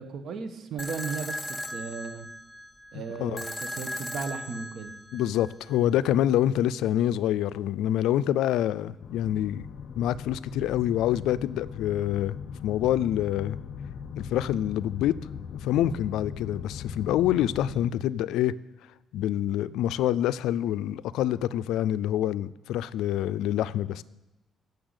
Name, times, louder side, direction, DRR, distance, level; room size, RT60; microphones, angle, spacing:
voice 1, 0.0-2.3 2.9-4.9, right 5 dB, 65° right, 8 dB, 1.3 m, -36 dB
sound 1, 0.8-5.8, left 1 dB, ahead, 0.6 m, -38 dB
voice 2, 2.9-3.4 5.1-9.7 10.0-12.4 12.6-13.6 14.2-15.2 15.6-18.5 19.1-24.0, left 12 dB, 90° left, 17 dB, 0.4 m, -26 dB
sound 2, 9.0-17.9, left 7 dB, 60° left, 0.7 m, -39 dB
10.0 x 6.7 x 8.1 m, 1.0 s
cardioid pair, 90°, 0 cm